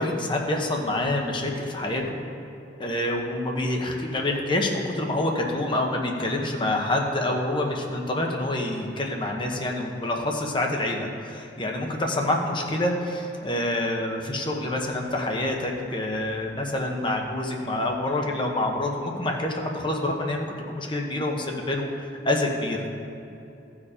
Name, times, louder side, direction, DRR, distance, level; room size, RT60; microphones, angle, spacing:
voice 1, 0.0-2.2 2.8-22.9, left 1 dB, 25° left, 1 dB, 1.0 m, -27 dB
14.5 x 4.9 x 5.0 m, 2.8 s
head